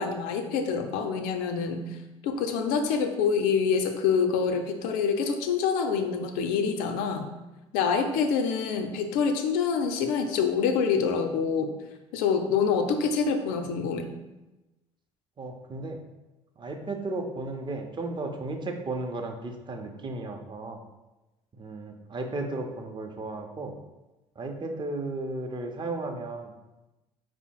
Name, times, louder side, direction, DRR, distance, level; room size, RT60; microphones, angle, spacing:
voice 1, 0.0-1.9 2.2-7.3 7.7-11.7 12.1-14.1, left 6 dB, 65° left, 6 dB, 0.5 m, -26 dB
voice 2, 15.4-16.0 16.6-20.8 21.6-23.7 24.4-26.5, right 2 dB, 30° right, 3 dB, 0.7 m, -34 dB
5.1 x 2.0 x 4.6 m, 1.0 s
figure-of-eight pair, 55°, 16 cm